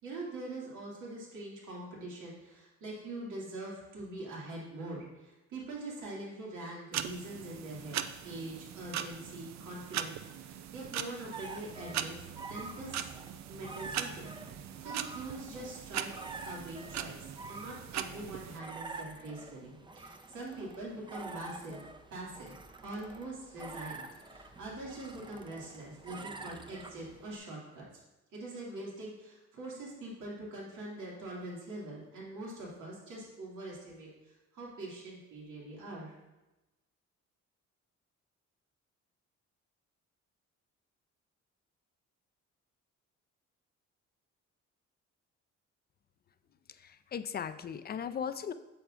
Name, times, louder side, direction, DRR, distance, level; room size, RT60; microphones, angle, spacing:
voice 1, 0.0-13.0 13.5-21.8 22.1-22.5 22.8-27.9 28.3-36.2, right 2 dB, 80° right, -4 dB, 2.3 m, -43 dB
sound 1, 6.9-18.6, right 10 dB, 65° right, 0.5 m, -40 dB
sound 2, 11.3-27.4, right 3 dB, 15° right, 0.5 m, -47 dB
voice 2, 46.8-48.5, left 7 dB, 35° left, 11 dB, 0.4 m, -37 dB
8.7 x 6.9 x 2.5 m, 1.0 s
cardioid pair, 90°, 30 cm